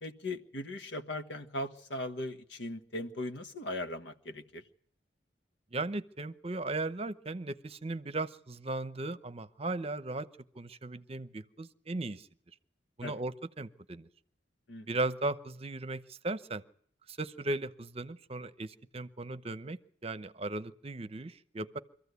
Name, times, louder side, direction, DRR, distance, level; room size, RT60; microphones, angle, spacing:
voice 1, 0.0-4.6 13.0-13.1 14.7-14.9, left 1 dB, 80° left, 8 dB, 1.5 m, -39 dB
voice 2, 5.7-10.3 10.5-12.3 13.0-14.1 14.9-16.6 17.1-21.8, right 2 dB, 35° right, 13 dB, 0.8 m, -37 dB
24.5 x 14.5 x 8.2 m, 0.64 s
head